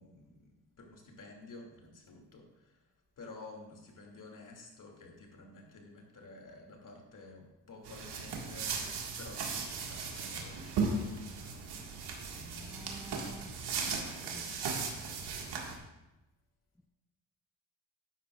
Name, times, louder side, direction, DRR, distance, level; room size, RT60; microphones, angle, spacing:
voice 1, 0.0-8.9 9.2-11.1, left 3 dB, 50° left, 1 dB, 2.4 m, -52 dB
sound 1, 7.8-15.7, right 4 dB, 80° right, 1.7 m, -37 dB
voice 2, 12.3-13.5 13.8-14.5, equal, 5° left, 7 dB, 0.4 m, -51 dB
13.0 x 9.7 x 2.4 m, 1.0 s
cardioid pair, 90°, 40 cm